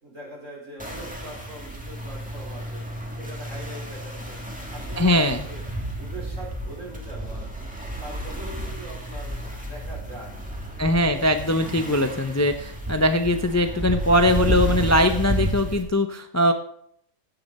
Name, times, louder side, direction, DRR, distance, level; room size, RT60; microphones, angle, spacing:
voice 1, 0.0-2.8 3.1-4.4 4.7-5.6 5.9-10.4 10.7-11.2, right 1 dB, 80° right, -4 dB, 4.8 m, -42 dB
sound 1, 0.8-15.8, right 1 dB, 5° right, 1.8 m, -32 dB
voice 2, 5.0-5.4 10.8-16.5, left 1 dB, 25° left, 7 dB, 0.4 m, -21 dB
15.5 x 6.7 x 4.2 m, 0.69 s
omnidirectional pair, 1.3 m